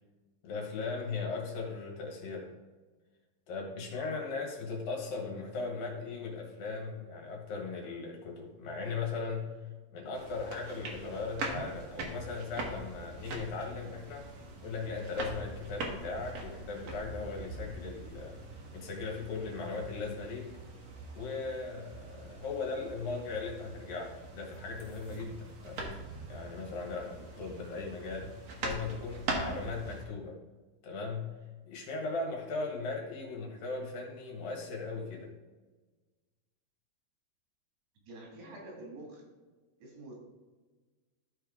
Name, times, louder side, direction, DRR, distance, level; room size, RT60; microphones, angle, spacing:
voice 1, 0.4-2.5 3.5-9.5 9.9-14.3 14.6-18.4 18.7-20.5 21.1-26.0 26.3-28.4 28.6-30.4 30.8-31.3 31.7-35.3, left 4 dB, 70° left, -1 dB, 3.2 m, -38 dB
sound 1, 10.1-30.0, right 3 dB, 60° right, 1.7 m, -42 dB
voice 2, 38.1-39.3 39.8-40.1, right 1 dB, 90° right, -2 dB, 4.2 m, -47 dB
13.0 x 4.5 x 3.6 m, 1.3 s
omnidirectional pair, 4.4 m